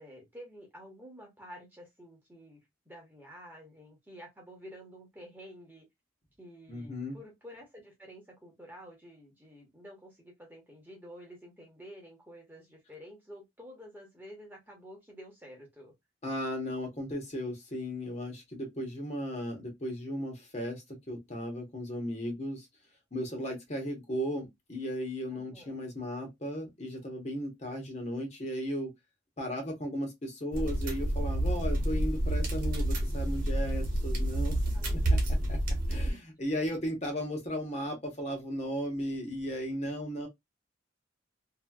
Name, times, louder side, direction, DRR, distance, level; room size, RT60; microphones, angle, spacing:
voice 1, 0.0-5.8 6.4-15.9 25.3-25.8 34.7-35.4 36.2-36.3, equal, 10° right, 1.0 m, -50 dB
voice 2, 6.7-7.2 16.2-22.7 23.1-28.9 29.4-34.6 35.5-35.6 35.9-40.3, equal, 35° left, 0.9 m, -36 dB
sound 1, 30.5-36.1, right 1 dB, 45° right, 1.0 m, -29 dB
2.8 x 2.7 x 2.3 m
head